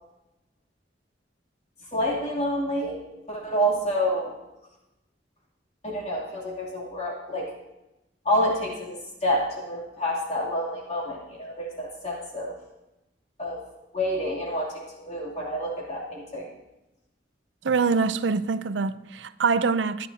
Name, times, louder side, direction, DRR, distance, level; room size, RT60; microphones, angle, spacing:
voice 1, 1.9-3.0 3.3-4.3 5.8-7.5 8.2-12.5 13.4-13.6 13.9-16.5, equal, 35° left, 2.8 m, -28 dB
voice 2, 17.6-20.1, right 5 dB, 80° right, 0.5 m, -24 dB
22.5 x 9.6 x 2.8 m
head